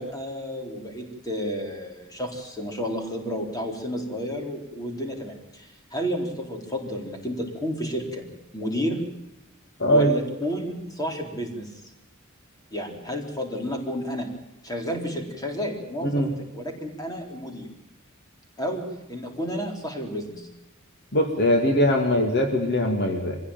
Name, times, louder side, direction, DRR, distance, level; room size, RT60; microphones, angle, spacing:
voice 1, 0.0-8.3 8.5-9.1 9.9-11.8 12.7-14.3 14.6-16.2 16.5-17.7 18.6-20.5, equal, 15° left, 2 dB, 4.1 m, -31 dB
voice 2, 9.8-10.1 16.0-16.3 21.1-23.4, equal, 50° left, 4 dB, 2.5 m, -21 dB
25.0 x 16.0 x 9.1 m, 0.87 s
head